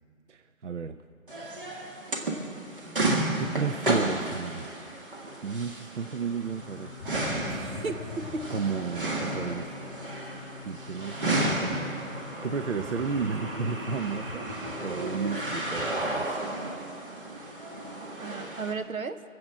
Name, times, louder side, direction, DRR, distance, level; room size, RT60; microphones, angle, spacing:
voice 1, 0.3-1.0 3.4-4.7 5.4-6.9 8.5-9.7 10.6-11.2 11.6-12.2 12.4-14.5 14.8-16.4, right 5 dB, 60° right, 8 dB, 0.7 m, -33 dB
sound 1, 1.3-18.7, right 1 dB, 40° right, 1.8 m, -33 dB
sound 2, 6.4-15.8, left 5 dB, 10° left, 1.1 m, -45 dB
voice 2, 7.4-8.5 18.2-19.2, right 3 dB, 85° right, 9 dB, 1.2 m, -35 dB
22.5 x 7.8 x 7.6 m, 2.4 s
hypercardioid pair, 175°, 41 cm